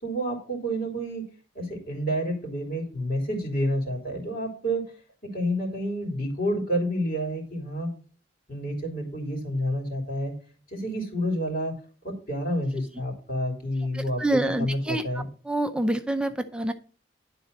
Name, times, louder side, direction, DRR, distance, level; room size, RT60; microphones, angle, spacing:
voice 1, 0.0-1.3 1.5-4.9 5.2-7.9 8.5-10.3 10.7-11.8 12.0-14.2 14.6-15.3, equal, 50° left, -1 dB, 3.0 m, -29 dB
voice 2, 13.9-15.0 15.5-16.7, right 1 dB, 5° right, 7 dB, 0.5 m, -26 dB
11.0 x 4.1 x 5.3 m, 0.41 s
head